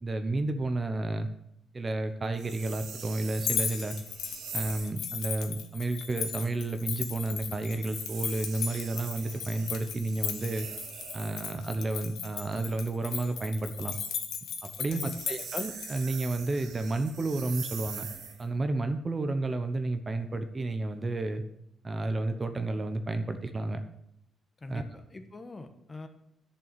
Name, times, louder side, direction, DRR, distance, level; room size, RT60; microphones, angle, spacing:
voice 1, 0.0-1.3 1.7-4.0 4.5-10.7 11.1-14.0 14.6-18.1 18.4-21.4 21.8-23.8 24.7-24.8, right 2 dB, 25° right, 8 dB, 1.0 m, -31 dB
sound 1, 2.3-5.0 7.7-11.6 14.8-18.5, right 6 dB, 80° right, 2.6 m, -43 dB
sound 2, 3.3-16.0, left 7 dB, 85° left, 1.7 m, -36 dB
voice 2, 14.9-15.2 24.6-26.1, left 2 dB, 20° left, 7 dB, 1.3 m, -43 dB
11.0 x 6.8 x 6.9 m, 0.79 s
cardioid pair, 135°, 0 cm